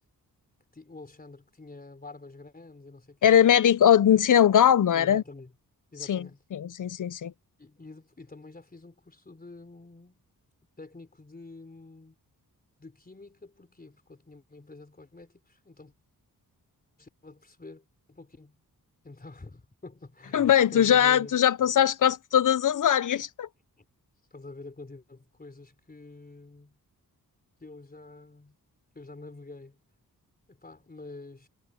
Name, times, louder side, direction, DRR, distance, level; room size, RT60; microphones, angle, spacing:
voice 1, 0.7-3.4 4.9-5.5 5.9-6.4 7.6-10.2 10.8-12.2 12.8-15.9 17.0-18.6 19.0-21.4 23.8-23.9 24.3-26.8 27.6-28.6 28.9-29.8 30.5-31.5, left 3 dB, 25° left, 3.8 m, -47 dB
voice 2, 3.2-5.2 6.1-6.3 6.5-7.3 20.3-23.5, left 9 dB, 55° left, 0.6 m, -21 dB
wide cardioid pair, 165°, 37 cm